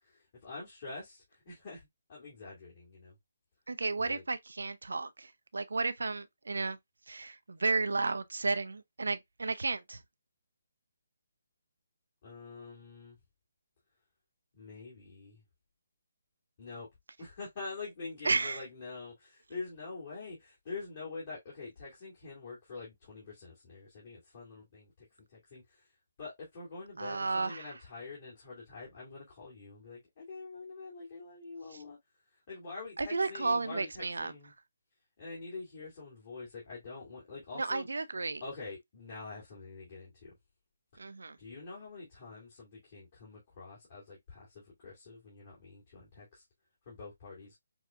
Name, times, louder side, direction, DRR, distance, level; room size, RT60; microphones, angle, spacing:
voice 1, 0.0-3.1 4.0-4.2 12.2-13.2 14.5-15.4 16.6-16.9 17.2-24.9 25.3-25.9 26.2-32.0 32.5-34.5 35.2-37.9 38.4-40.3 40.9-41.0 41.4-46.4 46.9-47.6, left 4 dB, 40° left, 2.5 m, -46 dB
voice 2, 3.7-6.8 7.1-10.0 18.2-18.6 27.0-27.8 31.7-31.8 33.0-34.3 37.5-38.4 41.0-41.4, right 3 dB, 80° right, 0.6 m, -33 dB
6.2 x 2.4 x 2.4 m
figure-of-eight pair, 150°, 0 cm